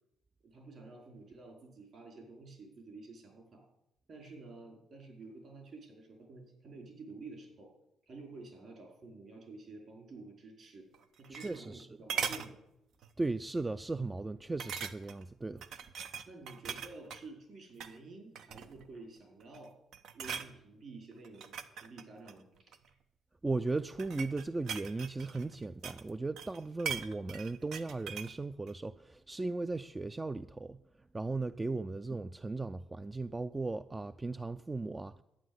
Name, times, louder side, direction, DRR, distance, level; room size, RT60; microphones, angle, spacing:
voice 1, 0.4-3.7 4.1-7.7 8.1-10.9 11.2-12.6 16.3-19.7 20.1-22.5, right 3 dB, 55° right, 4.5 m, -50 dB
sound 1, 10.9-11.8 12.1-12.5 13.0-13.2 13.6-13.7 14.6-15.2 15.6-17.2 17.7-18.0 18.3-18.9 19.4-19.7 19.9-20.5 21.2-22.9 23.7-26.1 26.4-28.4 28.7-28.8, right 7 dB, 75° right, 0.9 m, -40 dB
voice 2, 11.3-11.9 13.2-15.7 23.4-30.8 31.1-35.2, right 3 dB, 20° right, 0.4 m, -37 dB
11.5 x 9.4 x 7.9 m
cardioid pair, 90°, 0 cm